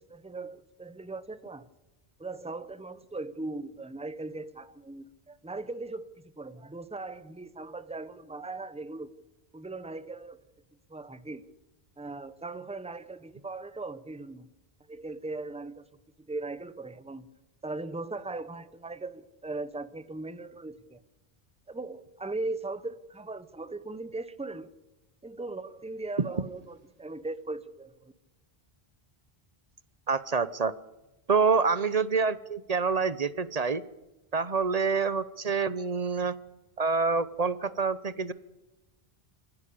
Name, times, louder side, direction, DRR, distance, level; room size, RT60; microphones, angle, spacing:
voice 1, 0.0-1.7 2.2-9.1 9.5-10.4 10.9-11.5 12.0-14.5 14.9-15.9 16.3-17.3 17.6-21.0 21.7-24.7 25.2-28.1, right 2 dB, 5° right, 14 dB, 0.9 m, -39 dB
voice 2, 30.1-30.7 31.3-33.8 34.3-36.3 36.8-38.3, right 5 dB, 40° right, 16 dB, 0.9 m, -27 dB
26.0 x 15.5 x 8.6 m, 1.1 s
omnidirectional pair, 1.0 m